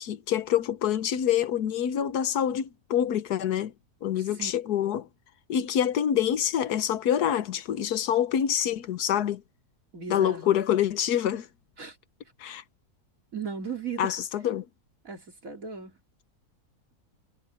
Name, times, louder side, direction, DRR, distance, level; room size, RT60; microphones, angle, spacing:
voice 1, 0.0-3.7 4.0-5.1 5.5-9.4 10.1-11.5 12.4-12.6 14.0-14.6, left 10 dB, 90° left, 1.5 m, -26 dB
voice 2, 4.2-4.6 9.9-10.5 11.8-12.0 13.3-14.1 15.0-16.0, right 5 dB, 60° right, 3.6 m, -37 dB
omnidirectional pair, 1.6 m